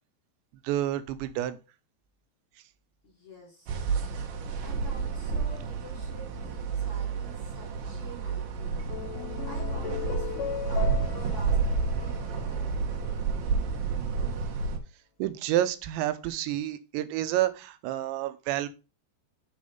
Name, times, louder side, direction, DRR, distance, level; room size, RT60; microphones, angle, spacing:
voice 1, 0.6-1.6 15.2-18.7, right 13 dB, 85° right, 12 dB, 2.9 m, -29 dB
voice 2, 3.0-3.9 4.6-8.8 9.4-12.8, left 1 dB, 35° left, -3 dB, 3.0 m, -48 dB
sound 1, 3.7-14.8, right 5 dB, 65° right, 2.6 m, -30 dB
sound 2, 8.7-13.2, left 13 dB, 85° left, 2.2 m, -38 dB
6.4 x 5.0 x 5.3 m, 0.31 s
omnidirectional pair, 5.2 m